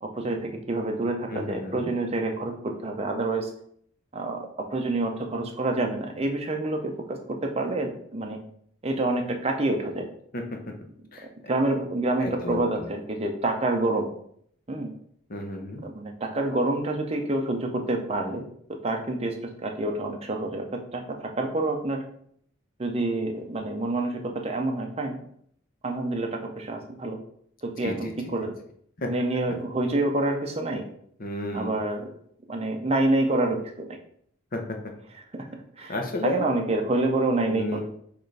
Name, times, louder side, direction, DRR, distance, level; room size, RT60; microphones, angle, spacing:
voice 1, 0.0-3.5 4.1-8.4 8.8-10.1 11.5-14.1 14.7-14.9 15.8-18.4 18.7-19.3 19.6-22.0 22.8-25.2 25.8-27.2 27.6-28.5 29.1-30.8 31.5-32.1 32.5-34.0 35.3-35.5 35.8-35.9 36.2-37.8, right 2 dB, 30° right, 2 dB, 0.6 m, -27 dB
voice 2, 1.3-1.9 10.3-10.6 11.1-11.3 12.2-12.9 15.3-15.8 27.8-28.1 29.0-29.1 31.2-31.8 34.5-34.8 35.9-36.4 37.4-37.8, left 1 dB, 45° left, 3 dB, 0.7 m, -32 dB
6.5 x 2.5 x 3.3 m, 0.66 s
head